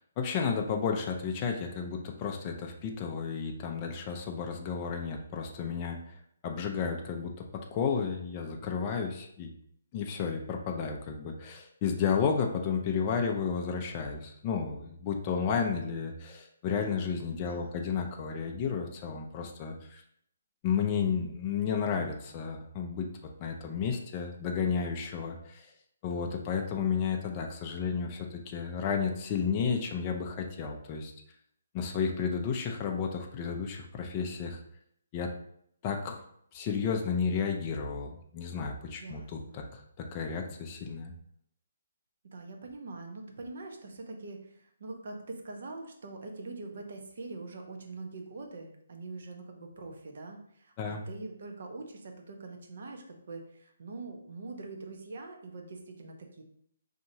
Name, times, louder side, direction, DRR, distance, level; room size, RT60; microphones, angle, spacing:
voice 1, 0.2-6.0 6.4-7.5 7.7-9.5 9.9-20.0 20.6-23.1 23.4-25.7 26.0-31.1 31.7-34.6 35.1-35.3 35.8-36.2 36.5-41.1 50.8-51.0, left 6 dB, 25° left, 2 dB, 0.4 m, -32 dB
voice 2, 17.4-17.9 38.9-39.6 42.3-56.4, right 3 dB, 60° right, 3 dB, 0.7 m, -44 dB
5.1 x 2.8 x 2.7 m, 0.69 s
hypercardioid pair, 165°, 0 cm